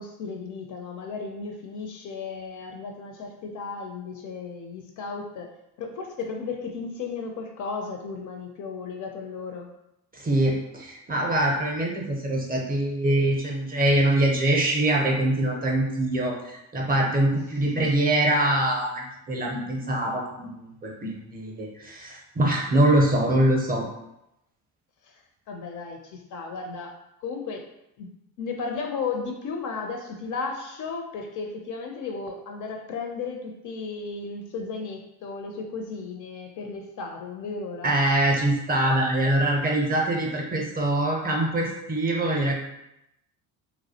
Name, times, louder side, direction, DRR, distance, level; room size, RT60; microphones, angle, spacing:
voice 1, 0.0-5.5 5.8-9.7 17.8-17.9 25.0-27.6 28.0-28.1 28.4-38.0, left 4 dB, 45° left, 3 dB, 0.4 m, -35 dB
voice 2, 10.1-23.9 37.8-42.6, right 1 dB, 20° right, -1 dB, 0.5 m, -24 dB
2.2 x 2.0 x 2.7 m, 0.85 s
hypercardioid pair, 70°, 43 cm